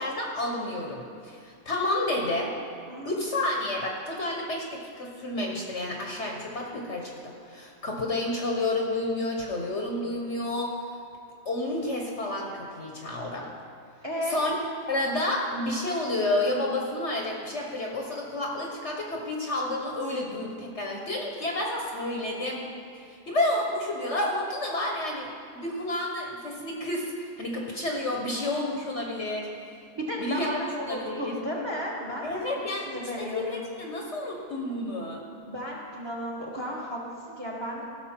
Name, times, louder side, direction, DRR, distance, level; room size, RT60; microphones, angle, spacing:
voice 1, 0.0-2.5 3.0-10.8 11.4-13.5 14.3-14.6 14.9-22.6 22.9-25.3 25.5-29.8 30.2-31.3 32.2-32.8 33.2-35.2, left 1 dB, 50° left, -1 dB, 1.3 m, -30 dB
voice 2, 14.0-14.4 29.9-32.4 32.9-33.6 35.4-37.0 37.3-37.8, equal, 15° right, -3 dB, 1.5 m, -33 dB
15.5 x 6.4 x 4.4 m, 2.3 s
omnidirectional pair, 1.7 m